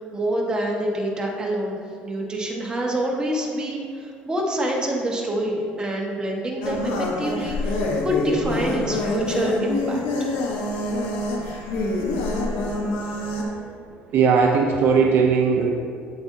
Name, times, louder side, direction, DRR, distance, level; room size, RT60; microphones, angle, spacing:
voice 1, 0.0-1.8 2.0-10.4, right 1 dB, 20° right, -1 dB, 1.4 m, -26 dB
sound 1, 6.6-13.4, left 2 dB, 85° left, 1.1 m, -26 dB
voice 2, 14.1-15.7, right 5 dB, 60° right, 2 dB, 0.6 m, -18 dB
8.0 x 7.7 x 2.7 m, 2.2 s
cardioid pair, 110°, 4 cm